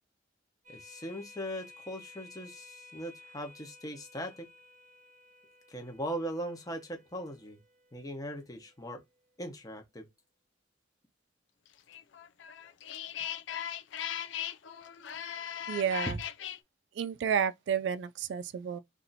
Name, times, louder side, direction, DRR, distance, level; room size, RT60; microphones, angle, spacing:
sound 1, 0.6-9.6, left 3 dB, 45° right, 0.9 m, -56 dB
voice 1, 0.7-4.5 5.7-7.6 7.9-9.0 9.4-10.1 16.1-16.2, equal, 20° left, 0.9 m, -39 dB
sound 2, 11.9-16.6, left 10 dB, 65° left, 0.4 m, -38 dB
voice 2, 15.7-16.2 17.0-18.8, right 7 dB, 65° right, 0.3 m, -31 dB
2.7 x 2.4 x 4.0 m
head